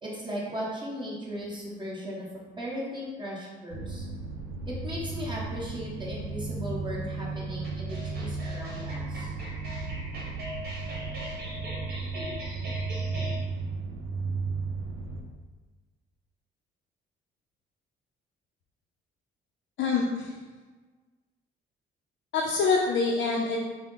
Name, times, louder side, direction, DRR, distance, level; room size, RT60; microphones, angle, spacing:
voice 1, 0.0-2.3 2.6-4.0 4.7-9.3, equal, 25° right, -5 dB, 1.2 m, -37 dB
sound 1, 3.7-15.2, right 4 dB, 80° right, 0.5 m, -35 dB
sound 2, 7.6-13.4, equal, 50° right, 1.2 m, -40 dB
voice 2, 19.8-20.3 22.3-23.6, left 4 dB, 70° left, -2 dB, 0.5 m, -25 dB
4.4 x 2.0 x 3.7 m, 1.3 s
cardioid pair, 90°, 20 cm